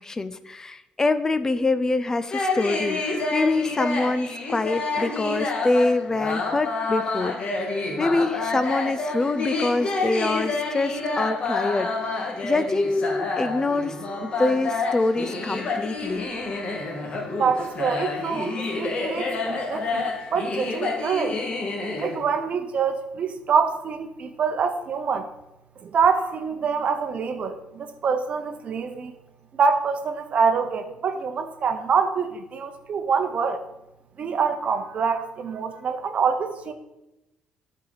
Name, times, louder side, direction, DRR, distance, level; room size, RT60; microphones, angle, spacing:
voice 1, 0.0-11.9 12.2-14.0 14.2-16.3, left 2 dB, 15° left, 12 dB, 0.5 m, -25 dB
sound 1, 2.3-22.2, left 3 dB, 35° left, 1.9 m, -28 dB
voice 2, 17.4-21.4 22.0-25.3 25.8-29.2 29.5-33.6 34.2-36.7, right 5 dB, 45° right, 8 dB, 0.9 m, -25 dB
12.0 x 4.7 x 4.0 m, 0.94 s
cardioid pair, 130°, 3 cm